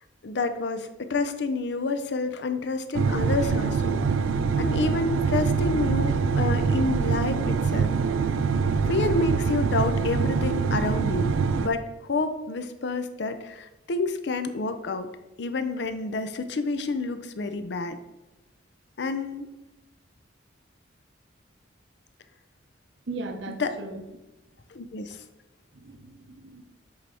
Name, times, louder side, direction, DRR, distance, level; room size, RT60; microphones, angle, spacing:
voice 1, 0.2-4.0 4.6-7.9 8.9-11.3 11.6-15.1 15.4-18.0 19.0-19.5 23.6-23.7 24.7-25.2, left 3 dB, 60° left, 10 dB, 0.5 m, -29 dB
sound 1, 2.9-11.7, right 5 dB, 90° right, 0.4 m, -24 dB
voice 2, 23.1-24.0 25.7-26.6, right 2 dB, 70° right, 6 dB, 0.7 m, -37 dB
7.8 x 3.4 x 4.2 m, 1.0 s
head